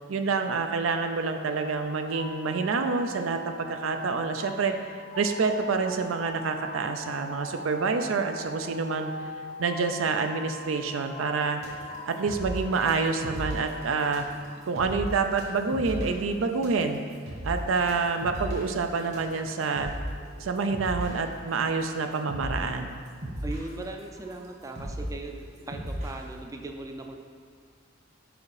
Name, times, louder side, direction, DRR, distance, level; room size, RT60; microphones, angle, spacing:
voice 1, 0.1-4.7 5.2-9.1 9.6-11.6 12.1-14.3 14.7-17.0 17.4-19.9 20.4-23.0, right 4 dB, 85° right, 6 dB, 0.5 m, -27 dB
sound 1, 1.4-13.9, left 2 dB, 40° left, 0.6 m, -42 dB
sound 2, 11.6-21.2 21.8-22.0 22.3-22.7 23.1-26.2, equal, 55° right, 1.6 m, -36 dB
voice 2, 23.4-25.4 25.7-27.2, right 2 dB, 15° right, 3 dB, 0.4 m, -38 dB
5.2 x 4.9 x 4.8 m, 2.1 s
head